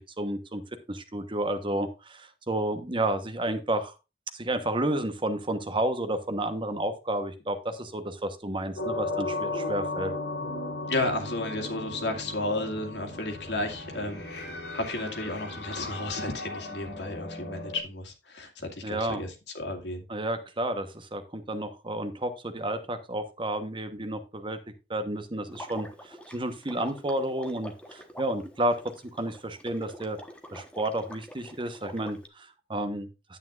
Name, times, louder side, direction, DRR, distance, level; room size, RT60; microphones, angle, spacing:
voice 1, 0.2-0.6 0.9-3.9 4.3-10.1 18.8-19.2 20.1-24.6 24.9-28.8 29.2-30.2 30.5-33.4, right 1 dB, 30° right, 1.1 m, -31 dB
sound 1, 8.8-17.8, left 2 dB, 70° left, 3.3 m, -36 dB
voice 2, 10.9-20.1, left 2 dB, 85° left, 2.1 m, -33 dB
Water / Liquid, 25.5-32.3, equal, 5° left, 1.2 m, -46 dB
9.7 x 8.6 x 2.5 m
head